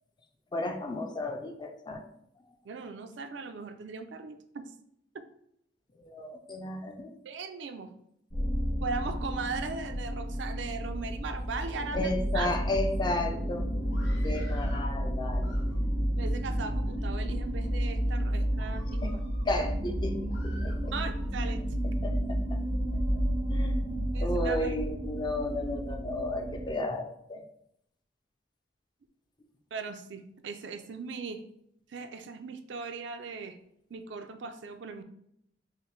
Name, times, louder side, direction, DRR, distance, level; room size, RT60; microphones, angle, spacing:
voice 1, 0.5-2.1 6.0-7.1 11.9-13.7 14.2-15.5 19.0-19.1 19.5-20.9 22.0-22.6 23.5-27.4, left 1 dB, 25° left, 5 dB, 0.4 m, -33 dB
voice 2, 2.6-4.7 7.2-7.9 8.8-12.5 16.1-19.1 20.9-21.7 24.1-24.7 29.7-31.4 31.9-33.6 33.9-35.0, right 4 dB, 75° right, 8 dB, 0.4 m, -38 dB
sound 1, 8.3-26.7, equal, 45° left, 1.4 m, -31 dB
Screaming, 13.8-14.9 15.3-16.1 16.7-17.3 17.8-18.0 18.5-19.5 20.3-21.3, left 1 dB, 80° left, 0.8 m, -52 dB
5.6 x 2.1 x 3.1 m, 0.73 s
head